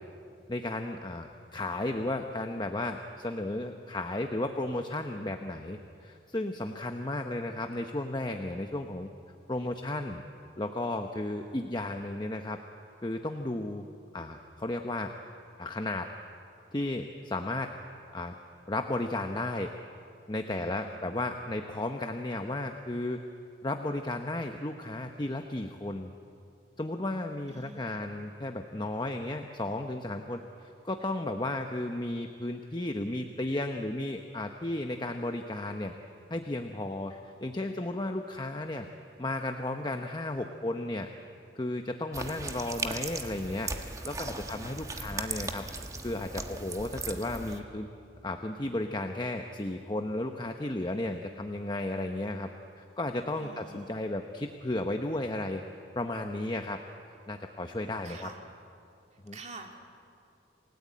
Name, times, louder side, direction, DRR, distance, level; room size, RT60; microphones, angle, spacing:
voice 1, 0.5-9.1 9.5-10.2 10.6-12.6 13.0-13.9 14.1-15.1 15.6-16.1 16.7-17.7 18.1-18.3 18.7-19.7 20.3-23.2 23.6-26.1 26.8-35.9 36.3-38.9 39.2-41.1 41.5-43.7 44.0-45.7 46.0-47.9 48.2-52.5 52.8-55.6 56.0-56.8 57.3-58.3 59.2-59.4, left 1 dB, 25° left, 5 dB, 0.9 m, -34 dB
voice 2, 20.5-21.0 27.5-28.0 53.4-53.9 58.0-58.4 59.3-59.8, right 3 dB, 40° right, 3 dB, 2.4 m, -47 dB
sound 1, 42.1-47.6, right 3 dB, 20° right, 1.3 m, -38 dB
28.0 x 18.0 x 8.7 m, 2.6 s
head